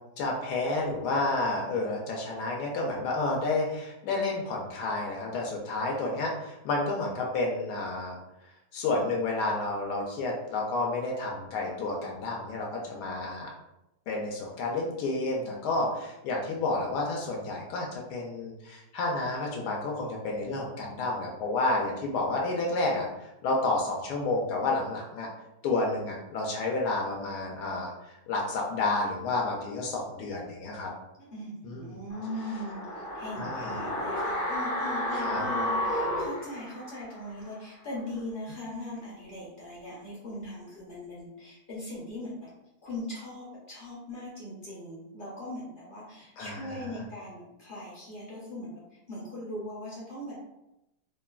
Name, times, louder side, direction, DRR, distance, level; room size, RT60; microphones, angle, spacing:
voice 1, 0.2-8.1 8.7-13.5 14.1-23.1 23.4-25.3 25.6-27.9 28.3-30.9 31.6-31.9 33.4-33.7 35.1-35.4 46.4-47.0, left 2 dB, 85° left, -1 dB, 1.1 m, -30 dB
voice 2, 31.2-42.5 42.8-50.4, left 1 dB, 45° left, -6 dB, 0.7 m, -40 dB
sound 1, 32.1-37.2 37.5-37.6, left 1 dB, 65° left, 1.2 m, -32 dB
3.1 x 2.1 x 2.3 m, 0.91 s
omnidirectional pair, 1.7 m